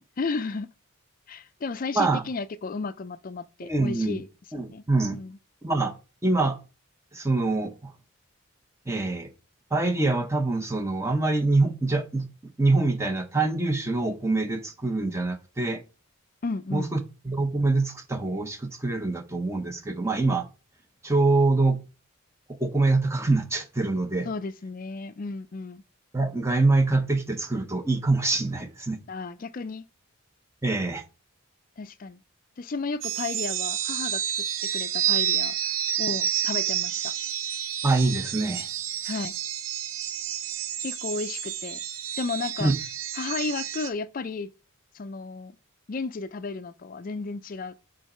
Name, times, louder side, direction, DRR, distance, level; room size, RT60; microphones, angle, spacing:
voice 1, 0.2-0.7 1.3-4.3 4.7-4.8 5.1-5.4 16.4-16.9 24.2-25.8 29.1-29.8 31.8-32.2 32.6-34.2 34.7-35.6 36.0-37.1 39.0-39.3 40.8-41.8 42.2-42.7 43.2-44.5 44.9-45.5 45.9-47.9, left 4 dB, 40° left, 0.4 m, -33 dB
voice 2, 3.6-4.2 4.5-5.2 5.6-5.9 6.2-6.6 7.1-7.9 8.9-9.3 9.7-12.3 12.6-15.8 16.7-17.0 17.3-20.5 21.0-21.8 22.6-24.3 26.1-29.0 30.6-31.0 37.8-38.7 42.6-42.8, right 3 dB, 15° right, 0.7 m, -25 dB
sound 1, 33.0-43.9, right 10 dB, 65° right, 0.6 m, -29 dB
6.4 x 3.9 x 4.3 m
head